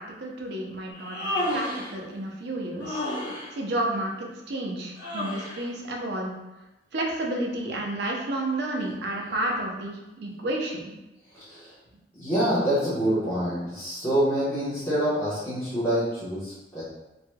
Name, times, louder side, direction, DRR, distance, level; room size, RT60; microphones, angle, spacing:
voice 1, 0.0-3.0 3.5-6.3 6.9-10.9, right 1 dB, 65° right, 0 dB, 0.6 m, -31 dB
Human voice, 0.9-2.0 2.8-3.5 5.0-5.7, left 1 dB, 70° left, 0.9 m, -31 dB
voice 2, 11.3-11.7 12.2-16.8, right 1 dB, 15° left, -14 dB, 1.0 m, -26 dB
3.1 x 2.8 x 2.2 m, 1.0 s
head